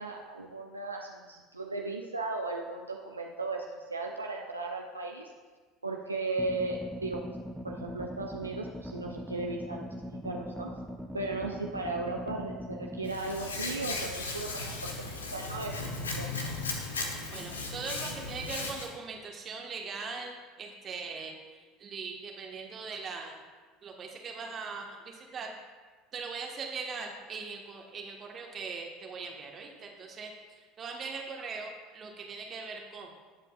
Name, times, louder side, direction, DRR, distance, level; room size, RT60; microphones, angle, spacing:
voice 1, 0.0-3.6 3.9-5.3 5.8-7.2 7.6-9.9 10.2-10.7 11.1-16.5, right 2 dB, 90° right, 1 dB, 0.6 m, -36 dB
sound 1, 6.4-13.1, equal, ahead, 0.8 m, -41 dB
Hands, 13.0-18.9, left 3 dB, 80° left, 1.1 m, -36 dB
voice 2, 17.3-23.4 23.8-25.5 26.1-33.1, right 4 dB, 35° right, 1 dB, 1.4 m, -40 dB
20.0 x 7.5 x 2.4 m, 1.4 s
figure-of-eight pair, 70°, 0 cm